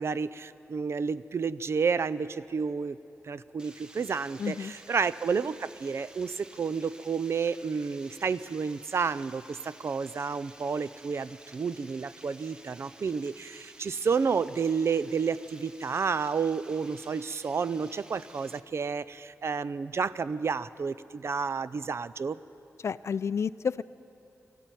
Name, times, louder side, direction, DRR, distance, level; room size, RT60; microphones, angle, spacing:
voice 1, 0.0-3.0 3.2-22.4, right 5 dB, 55° right, 16 dB, 0.5 m, -30 dB
Water, 3.6-18.6, right 1 dB, 15° right, 1.0 m, -53 dB
voice 2, 4.4-4.7 22.8-23.8, left 6 dB, 60° left, 16 dB, 0.4 m, -30 dB
20.5 x 13.5 x 9.2 m, 2.8 s
wide cardioid pair, 120°, 5 cm